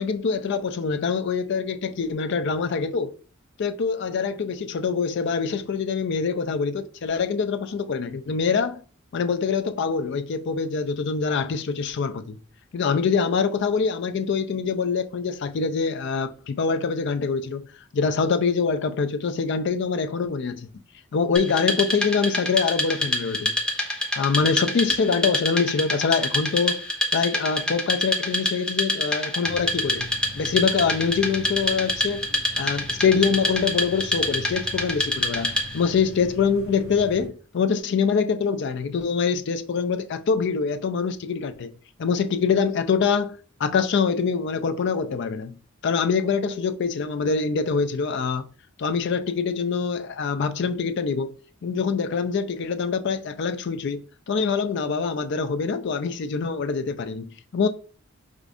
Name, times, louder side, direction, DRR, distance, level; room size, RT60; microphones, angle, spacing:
voice 1, 0.0-3.1 3.6-8.8 9.1-12.4 12.7-17.6 17.9-20.7 21.1-23.6 24.2-26.8 27.1-30.1 30.3-32.3 32.6-41.7 42.0-45.6 45.8-48.5 48.8-51.3 51.6-57.7, left 5 dB, 55° left, 0.4 m, -24 dB
Wood, 21.4-35.9, left 1 dB, 5° left, 0.6 m, -26 dB
sound 1, 29.4-37.3, equal, 80° right, 1.3 m, -41 dB
4.9 x 2.4 x 2.5 m
head